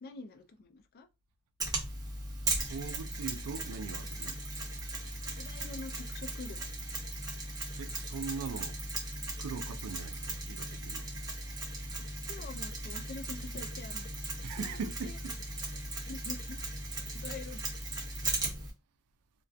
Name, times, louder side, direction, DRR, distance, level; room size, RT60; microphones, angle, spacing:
voice 1, 0.0-1.1 5.3-6.6 12.3-14.1 14.5-15.2 16.0-17.6, left 3 dB, 45° left, 0.3 m, -46 dB
Mechanisms, 1.6-18.7, right 2 dB, 15° right, 0.7 m, -37 dB
voice 2, 2.6-4.4 7.8-8.8 9.4-11.1 14.4-15.4, right 5 dB, 85° right, 0.4 m, -41 dB
2.3 x 2.2 x 2.5 m
head